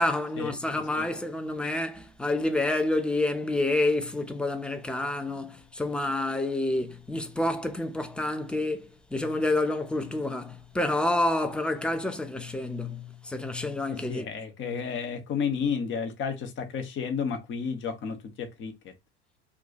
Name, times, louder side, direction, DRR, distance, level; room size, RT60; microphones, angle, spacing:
voice 1, 0.0-14.3, left 2 dB, 5° left, 0.4 m, -28 dB
voice 2, 13.9-18.9, left 6 dB, 35° left, 0.8 m, -32 dB
2.3 x 2.2 x 3.8 m
hypercardioid pair, 80°, 33 cm